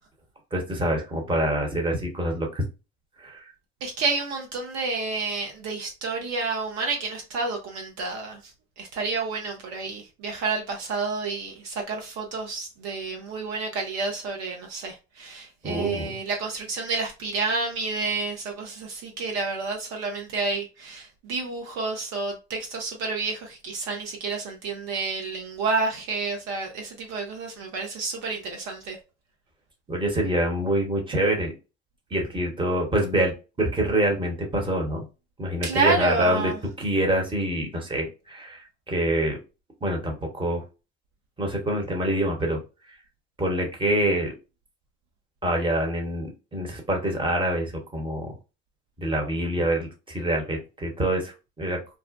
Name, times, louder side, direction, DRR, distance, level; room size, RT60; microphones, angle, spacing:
voice 1, 0.5-2.6 3.2-3.4 15.6-16.1 29.9-31.5 32.1-35.0 35.4-36.5 36.8-38.6 38.9-39.4 39.8-40.6 41.4-42.6 43.4-44.3 45.4-48.3 49.0-51.3 51.6-51.8, right 1 dB, 15° right, 1.0 m, -26 dB
voice 2, 3.8-8.4 8.8-29.0 35.6-36.6, right 3 dB, 55° right, 0.8 m, -29 dB
2.5 x 2.0 x 2.4 m
hypercardioid pair, 70°, 31 cm